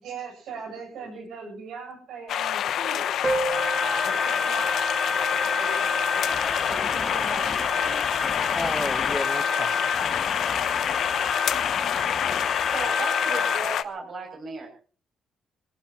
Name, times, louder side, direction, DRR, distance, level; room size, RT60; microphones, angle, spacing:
voice 1, 0.0-3.2 3.8-5.0 5.4-6.4 6.7-8.1, right 4 dB, 80° right, 4 dB, 8.0 m, -39 dB
sound 1, 2.3-13.8, left 10 dB, 75° left, 0.9 m, -27 dB
Piano, 3.2-8.6 8.9-9.0 9.2-9.3 9.7-9.8 10.5-10.7, right 2 dB, 25° right, 1.5 m, -35 dB
sound 2, 3.5-13.6, left 3 dB, 25° left, 1.8 m, -30 dB
voice 2, 8.5-10.3 11.5-11.6, left 1 dB, 5° left, 12 dB, 1.3 m, -33 dB
voice 3, 12.7-14.7, right 4 dB, 55° right, 2 dB, 7.4 m, -35 dB
22.5 x 17.5 x 3.0 m, 0.39 s
cardioid pair, 90°, 0 cm